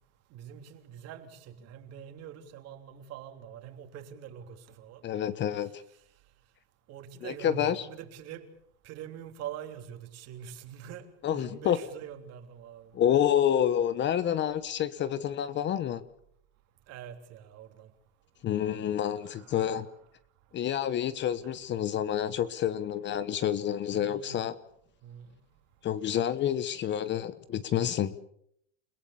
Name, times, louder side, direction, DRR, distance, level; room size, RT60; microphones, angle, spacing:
voice 1, 0.3-5.0 5.6-5.7 6.9-8.5 8.8-13.0 16.9-17.9 18.9-19.7 21.4-21.6 23.9-24.5 25.0-25.3, right 9 dB, 45° right, 3.3 m, -45 dB
voice 2, 5.0-5.8 7.2-7.9 11.2-11.8 12.9-16.0 18.4-19.9 20.5-24.6 25.8-28.2, left 10 dB, 30° left, 1.1 m, -28 dB
29.5 x 17.5 x 7.1 m
supercardioid pair, 130°, 35 cm